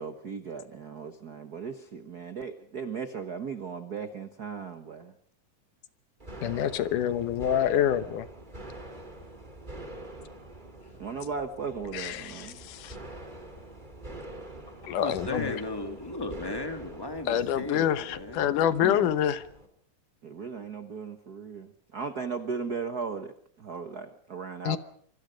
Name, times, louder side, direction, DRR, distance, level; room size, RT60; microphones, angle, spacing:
voice 1, 0.0-5.1 11.0-12.6 18.8-19.1 20.2-24.8, right 5 dB, 70° right, 9 dB, 0.9 m, -37 dB
sound 1, 6.2-19.7, right 1 dB, 15° right, 2.9 m, -45 dB
voice 2, 6.4-8.3 11.9-12.3 12.7-12.9 14.9-15.6 17.3-19.4 24.7-24.8, left 10 dB, 75° left, 13 dB, 2.5 m, -26 dB
voice 3, 14.7-18.5, left 2 dB, 10° left, 6 dB, 1.7 m, -36 dB
25.5 x 25.0 x 5.2 m, 0.63 s
omnidirectional pair, 3.8 m